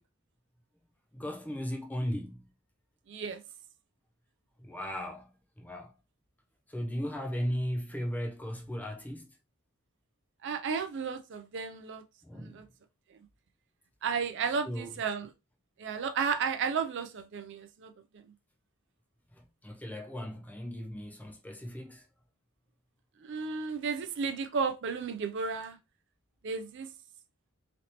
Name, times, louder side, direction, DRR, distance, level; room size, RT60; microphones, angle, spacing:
voice 1, 1.1-2.5 4.6-5.3 5.6-5.9 6.7-9.3 12.2-12.6 14.7-14.9 19.6-22.0, equal, 5° left, 0.5 m, -36 dB
voice 2, 3.1-3.4 10.4-12.0 12.3-12.7 14.0-15.3 15.8-18.2 23.2-25.8 26.4-26.9, right 5 dB, 55° right, 0.4 m, -33 dB
3.2 x 2.7 x 2.8 m
head